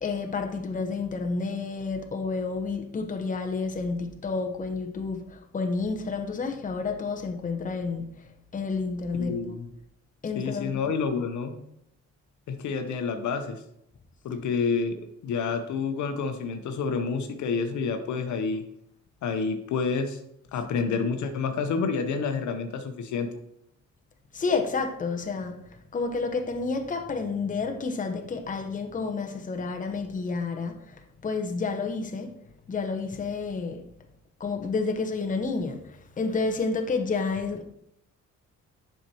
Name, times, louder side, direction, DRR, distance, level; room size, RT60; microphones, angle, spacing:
voice 1, 0.0-8.1 8.5-9.4 10.2-10.9 24.3-25.6 25.9-32.3 32.7-33.8 34.4-37.7, left 4 dB, 25° left, 0.8 m, -30 dB
voice 2, 9.1-9.7 10.4-11.5 12.5-13.6 14.2-18.6 19.2-20.2 20.5-23.3, left 5 dB, 70° left, 0.8 m, -29 dB
7.4 x 5.7 x 2.9 m
cardioid pair, 90°, 30 cm